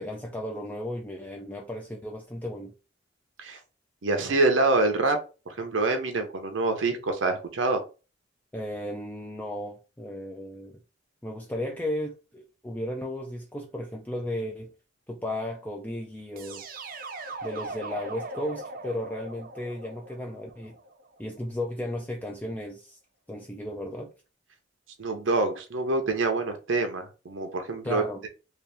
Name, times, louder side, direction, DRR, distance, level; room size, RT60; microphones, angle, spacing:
voice 1, 0.0-2.7 8.5-10.8 11.2-14.7 15.1-16.6 17.4-20.8 21.2-23.0 23.3-24.1 27.8-28.2, left 1 dB, 10° left, 0.4 m, -35 dB
voice 2, 4.0-5.2 5.6-7.8 25.0-28.3, right 3 dB, 85° right, 0.7 m, -26 dB
sound 1, 16.4-21.3, right 2 dB, 45° right, 0.6 m, -40 dB
3.0 x 2.9 x 3.4 m
head